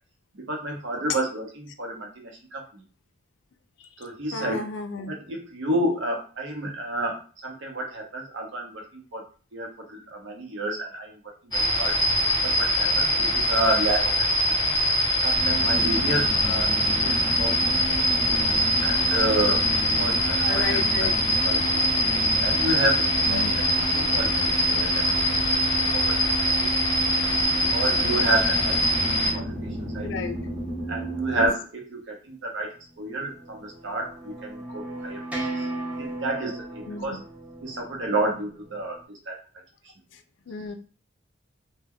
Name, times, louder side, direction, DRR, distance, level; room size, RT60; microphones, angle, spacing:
voice 1, 0.3-2.8 4.0-4.7 5.1-7.2 7.4-9.2 9.5-11.2 11.4-12.0 12.4-14.8 15.2-16.7 17.0-17.7 18.8-20.8 21.4-22.0 22.4-23.7 23.9-25.1 25.5-25.6 25.9-26.7 27.7-28.8 29.1-29.5 29.9-30.1 30.9-35.7 36.0-37.2 37.6-39.4, right 1 dB, 75° right, 0 dB, 0.7 m, -30 dB
voice 2, 4.3-5.1 20.4-21.2 23.3-23.5 30.0-30.4 31.3-31.5 36.9-37.0 40.1-40.2 40.5-40.7, left 4 dB, 75° left, 8 dB, 0.3 m, -33 dB
sound 1, 11.5-29.3, equal, 20° left, 0.8 m, -23 dB
sound 2, 15.4-31.5, right 2 dB, 35° right, 0.7 m, -32 dB
sound 3, 33.0-39.0, right 2 dB, 5° right, 0.3 m, -36 dB
2.1 x 2.1 x 3.5 m, 0.39 s
head